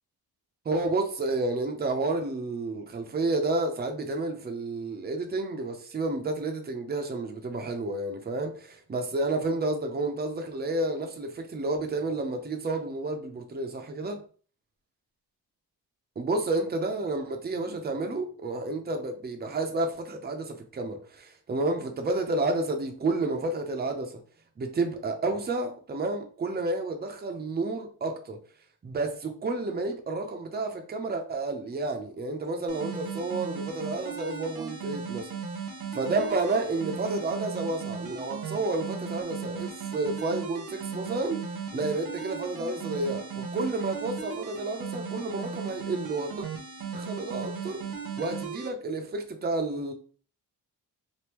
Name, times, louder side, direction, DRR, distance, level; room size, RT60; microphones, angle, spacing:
voice 1, 0.6-14.2 16.2-24.2 24.6-28.4 28.8-35.3 35.9-41.4 41.7-46.5 46.9-47.8 48.2-49.9, right 2 dB, 25° right, 0.6 m, -30 dB
sound 1, 32.7-48.7, right 5 dB, 65° right, 0.9 m, -37 dB
3.4 x 2.6 x 3.0 m
cardioid pair, 115°, 39 cm